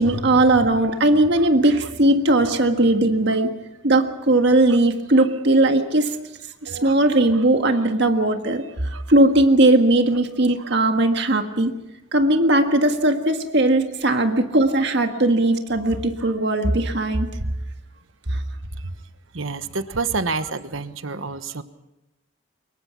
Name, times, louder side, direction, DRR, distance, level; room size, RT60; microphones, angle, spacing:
voice 1, 0.0-3.5 3.8-6.2 6.6-11.7 12.1-17.3 18.3-18.4, right 1 dB, 55° right, 5 dB, 1.7 m, -18 dB
voice 2, 19.3-21.6, right 4 dB, 75° right, 11 dB, 1.2 m, -29 dB
25.0 x 22.0 x 5.8 m, 0.95 s
head